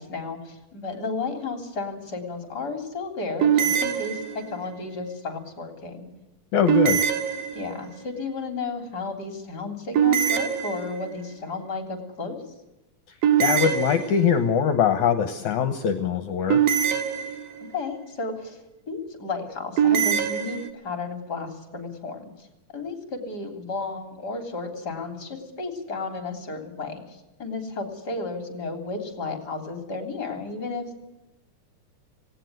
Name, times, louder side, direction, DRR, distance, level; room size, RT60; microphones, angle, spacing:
voice 1, 0.0-6.1 7.5-12.4 17.7-18.6 18.9-22.5 22.7-31.0, left 3 dB, 30° left, 6 dB, 3.7 m, -33 dB
sound 1, 3.4-4.7 6.7-8.0 9.9-11.2 13.2-14.5 16.5-17.8 19.8-20.7, right 8 dB, 90° right, 3.0 m, -23 dB
voice 2, 6.5-7.0 13.4-16.6, left 7 dB, 70° left, 9 dB, 2.4 m, -22 dB
18.5 x 18.0 x 9.4 m, 0.99 s
omnidirectional pair, 3.7 m